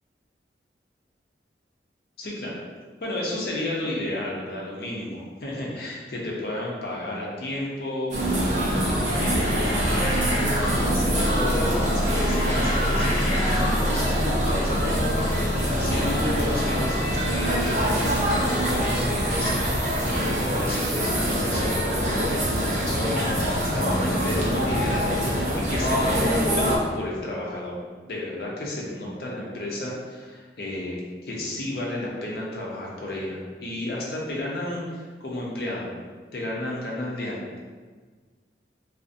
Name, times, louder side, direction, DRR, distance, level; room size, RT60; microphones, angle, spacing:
voice 1, 2.2-2.6 3.0-10.1 10.6-23.3 23.6-27.8 28.0-35.9 36.3-37.6, left 1 dB, 60° left, -4 dB, 0.5 m, -32 dB
sound 1, 8.1-26.8, equal, 40° right, 0.5 m, -24 dB
sound 2, 8.9-14.1, left 1 dB, 10° left, 1.2 m, -33 dB
2.5 x 2.0 x 2.5 m, 1.5 s
head